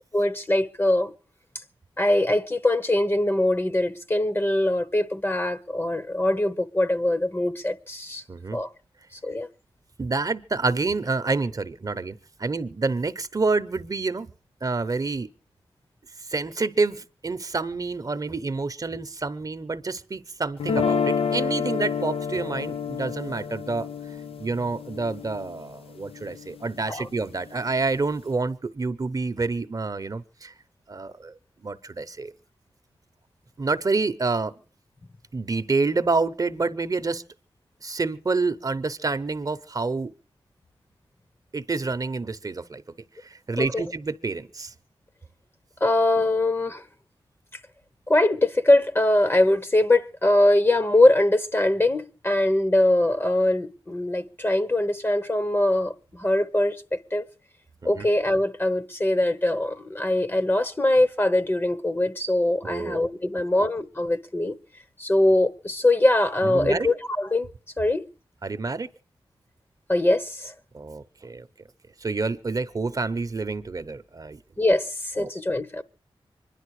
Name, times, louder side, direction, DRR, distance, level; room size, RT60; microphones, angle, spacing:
voice 1, 0.1-1.1 2.0-8.2 8.5-8.7 9.2-9.5 26.9-27.1 43.6-43.8 45.8-46.8 48.1-57.2 57.8-64.5 65.0-67.5 67.8-68.0 69.9-70.5 74.6-75.8, left 1 dB, 25° left, 1.0 m, -22 dB
voice 2, 10.0-14.3 14.6-15.3 16.3-23.9 24.4-30.5 30.9-31.3 31.6-32.3 33.6-34.5 35.3-37.2 37.8-40.1 41.5-42.8 43.2-44.7 57.8-58.1 62.6-63.0 63.5-63.7 66.4-66.9 68.4-68.9 70.7-71.5 72.0-74.4 75.2-75.3, right 3 dB, 40° right, 0.8 m, -28 dB
sound 1, 20.6-26.7, left 6 dB, 80° left, 0.7 m, -29 dB
24.5 x 11.0 x 4.8 m
wide cardioid pair, 120°, 10 cm